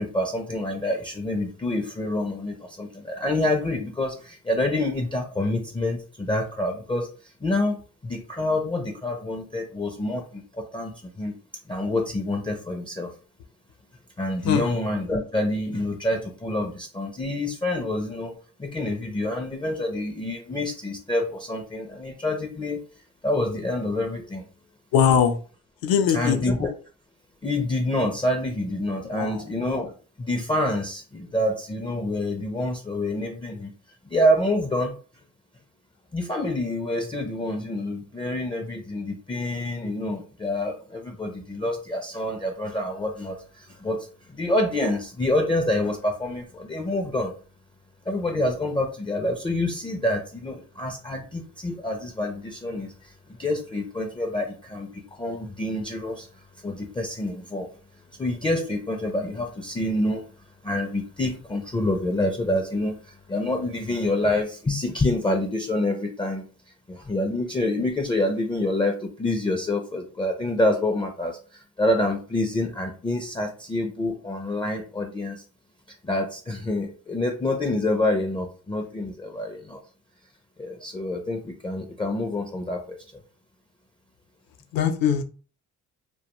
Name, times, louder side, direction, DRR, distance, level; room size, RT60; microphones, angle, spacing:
voice 1, 0.0-7.8 8.0-11.4 11.7-13.1 14.2-22.9 23.2-24.4 26.1-26.7 27.4-33.7 34.1-35.0 36.1-47.3 48.1-57.7 58.1-60.3 60.6-66.4 66.9-75.4 76.0-79.8 80.6-83.2, left 1 dB, 15° left, 3 dB, 0.4 m, -27 dB
voice 2, 24.9-25.4 25.8-26.4 29.2-29.5 84.7-85.2, left 8 dB, 70° left, 7 dB, 0.6 m, -21 dB
2.2 x 2.2 x 2.9 m, 0.38 s
supercardioid pair, 75°, 36 cm